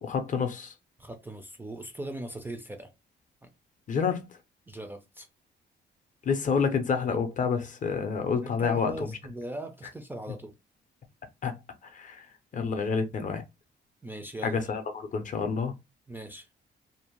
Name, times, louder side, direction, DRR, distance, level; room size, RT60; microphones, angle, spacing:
voice 1, 0.0-0.7 3.9-4.3 6.2-9.1 11.4-11.6 11.8-12.3 12.5-13.4 14.4-15.7, left 5 dB, 40° left, 0.5 m, -28 dB
voice 2, 1.0-2.9 3.4-3.5 4.7-5.3 8.4-10.5 12.8-12.9 14.0-14.6 16.1-16.5, right 1 dB, 10° right, 0.3 m, -40 dB
2.6 x 2.0 x 2.9 m
cardioid pair, 145°, 19 cm